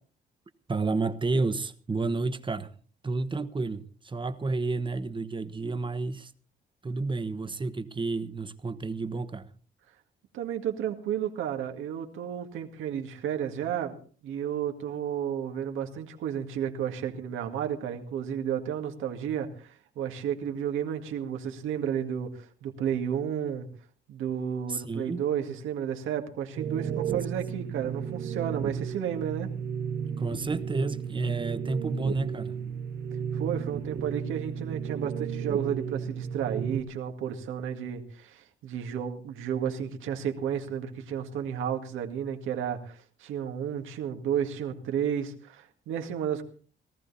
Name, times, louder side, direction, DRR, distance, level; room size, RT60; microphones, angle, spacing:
voice 1, 0.7-2.7 3.0-6.3 6.8-9.5 24.7-25.2 30.2-32.6, right 3 dB, 25° right, 1.2 m, -30 dB
voice 2, 10.3-13.9 14.2-23.7 24.1-29.5 33.3-46.4, right 9 dB, 90° right, 2.1 m, -32 dB
sound 1, 26.6-36.8, right 7 dB, 60° right, 1.8 m, -33 dB
18.5 x 14.0 x 4.2 m
cardioid pair, 90°, 20 cm